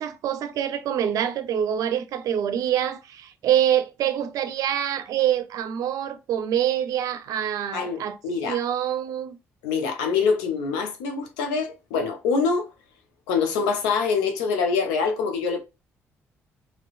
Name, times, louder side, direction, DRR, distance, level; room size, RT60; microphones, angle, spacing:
voice 1, 0.0-8.2 8.4-9.4, right 10 dB, 70° right, 0.5 m, -25 dB
voice 2, 7.7-8.6 9.6-12.7 13.3-15.6, left 5 dB, 85° left, 0.7 m, -25 dB
3.0 x 2.9 x 2.3 m
hypercardioid pair, 55°, 6 cm